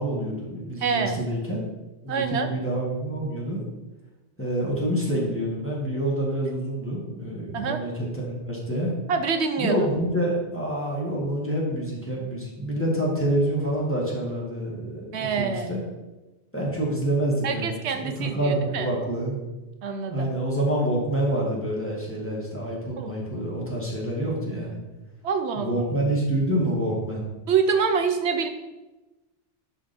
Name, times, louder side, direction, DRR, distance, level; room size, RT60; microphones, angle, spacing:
voice 1, 0.0-1.6 2.0-3.6 4.4-8.9 9.6-15.8 16.5-17.7 18.0-19.4 20.1-24.8 25.6-27.3, right 1 dB, 10° left, -4 dB, 1.7 m, -27 dB
voice 2, 0.8-1.2 2.1-2.5 7.5-7.8 9.1-9.8 15.1-15.7 17.4-18.9 19.8-20.3 23.0-23.1 25.2-25.8 27.5-28.5, right 6 dB, 75° right, 7 dB, 0.9 m, -26 dB
10.0 x 4.1 x 4.3 m, 1.1 s
omnidirectional pair, 1.2 m